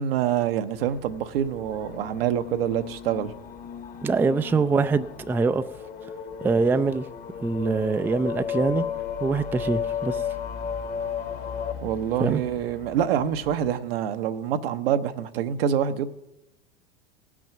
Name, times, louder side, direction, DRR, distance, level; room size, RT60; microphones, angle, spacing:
voice 1, 0.0-3.3 11.8-16.1, right 9 dB, 75° right, 0.9 m, -26 dB
sound 1, 0.7-13.7, left 6 dB, 65° left, 1.9 m, -45 dB
sound 2, 1.4-11.7, left 7 dB, 30° left, 1.0 m, -34 dB
voice 2, 4.0-5.6 6.4-7.0 7.4-8.8 9.2-10.2 12.2-12.4, right 4 dB, 5° right, 0.3 m, -23 dB
18.0 x 6.2 x 5.9 m
hypercardioid pair, 90°, 29 cm